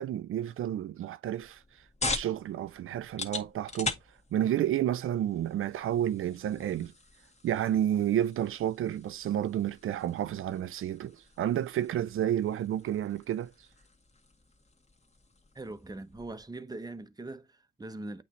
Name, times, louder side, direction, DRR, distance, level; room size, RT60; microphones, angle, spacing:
voice 1, 0.0-1.6 2.0-3.9 4.3-6.9 7.4-13.5, right 11 dB, 85° right, 0.4 m, -30 dB
sound 1, 1.4-16.5, left 3 dB, 30° left, 1.9 m, -42 dB
voice 2, 15.5-18.2, right 2 dB, 20° right, 0.9 m, -41 dB
8.4 x 3.1 x 4.2 m
cardioid pair, 90°, 21 cm